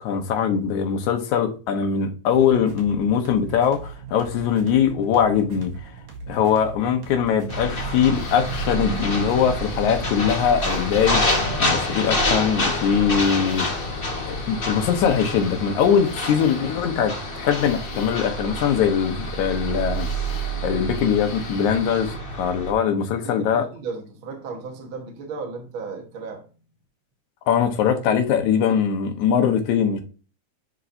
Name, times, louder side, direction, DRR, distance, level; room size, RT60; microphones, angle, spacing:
voice 1, 0.0-5.7 6.3-11.2 11.6-13.7 14.3-20.1 20.6-23.6 27.5-30.0, left 7 dB, 80° left, 2.5 m, -21 dB
sound 1, 2.3-9.9, right 5 dB, 70° right, 3.1 m, -39 dB
sound 2, 7.5-22.7, left 1 dB, 35° left, 0.8 m, -27 dB
sound 3, 8.1-22.2, left 5 dB, 65° left, 2.2 m, -42 dB
voice 2, 23.2-26.5, right 4 dB, 55° right, 1.8 m, -35 dB
11.5 x 4.6 x 2.6 m
omnidirectional pair, 3.4 m